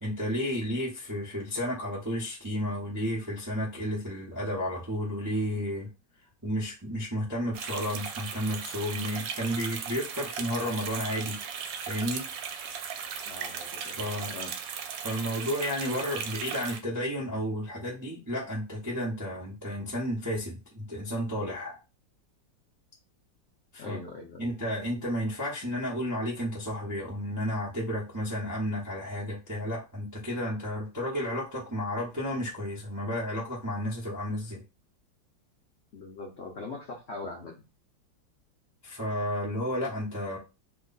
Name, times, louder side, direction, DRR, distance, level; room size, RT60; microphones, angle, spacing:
voice 1, 0.0-5.9 6.4-11.4 11.9-12.2 14.0-14.3 15.0-21.8 23.7-24.0 24.4-34.6 38.8-40.4, equal, 20° right, -5 dB, 0.5 m, -32 dB
sound 1, 7.5-16.8, right 7 dB, 80° right, 1.2 m, -37 dB
voice 2, 13.3-14.5 23.8-24.6 35.9-37.6, left 3 dB, 65° left, 0 dB, 0.6 m, -41 dB
3.1 x 2.2 x 3.9 m, 0.28 s
omnidirectional pair, 2.0 m